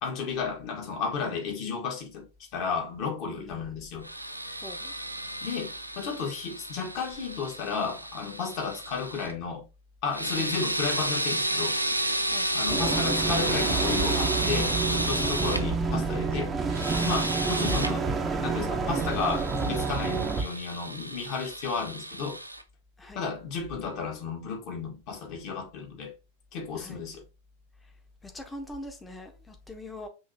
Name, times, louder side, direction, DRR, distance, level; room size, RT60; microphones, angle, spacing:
voice 1, 0.0-4.1 5.4-9.6 10.0-11.8 12.5-16.5 17.0-18.1 18.4-22.4 23.1-26.1 26.5-27.2, left 5 dB, 45° left, 1.5 m, -33 dB
voice 2, 3.4-3.7 4.6-4.9 10.3-10.6 12.3-12.6 15.2-15.5 23.0-23.3 26.7-27.0 27.8-27.9 28.2-30.1, left 1 dB, 10° left, 1.0 m, -43 dB
sound 1, 4.0-9.3 10.1-15.6 16.7-17.9 19.0-22.6, right 1 dB, 90° right, 0.4 m, -32 dB
sound 2, 12.7-20.4, right 4 dB, 20° right, 0.8 m, -28 dB
6.3 x 3.0 x 2.8 m
figure-of-eight pair, 90°, 0 cm